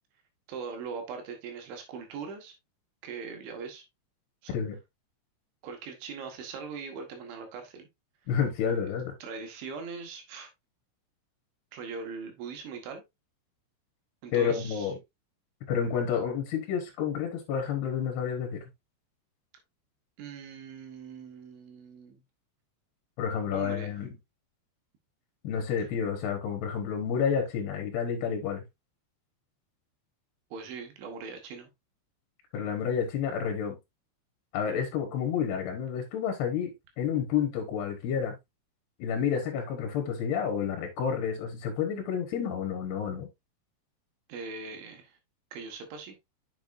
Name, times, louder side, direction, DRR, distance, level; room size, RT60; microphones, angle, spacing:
voice 1, 0.5-2.5 3.0-3.8 4.4-4.6 5.6-7.9 8.7-8.9 9.2-10.5 11.7-13.0 14.2-14.9 20.2-22.2 23.5-23.9 30.5-31.7 44.3-45.2 45.5-46.2, right 5 dB, 75° right, 3.9 m, -40 dB
voice 2, 8.3-9.1 14.3-15.0 15.7-18.6 23.2-24.1 25.4-28.6 32.5-33.8 34.5-38.4 39.0-43.3, left 7 dB, 65° left, 3.0 m, -30 dB
7.2 x 7.1 x 2.6 m
omnidirectional pair, 5.5 m